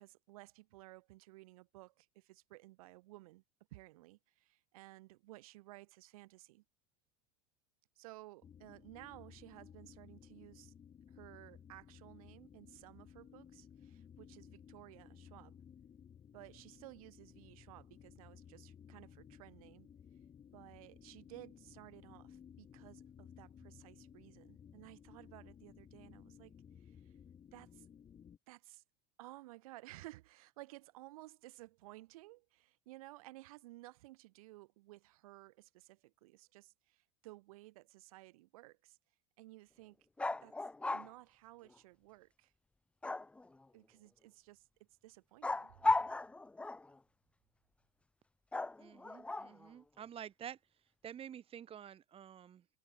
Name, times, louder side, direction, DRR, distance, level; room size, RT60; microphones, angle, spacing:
voice 1, 0.0-3.4 3.7-6.6 8.0-10.7 11.1-15.6 16.3-19.9 20.5-27.1 27.5-27.9 28.5-28.8 29.2-39.0 39.4-40.1 40.4-40.6 40.9-42.5 43.7-44.7 45.0-45.8, right 19 dB, 75° right, 2.3 m, -56 dB
sound 1, 8.4-28.4, left 8 dB, 30° left, 4.5 m, -58 dB
sound 2, 40.2-41.1 43.0-43.6 45.4-47.0 48.5-49.7, left 2 dB, 5° left, 0.4 m, -36 dB
voice 2, 48.8-50.6 51.0-52.6, right 9 dB, 30° right, 1.6 m, -49 dB
hypercardioid pair, 105°, 18 cm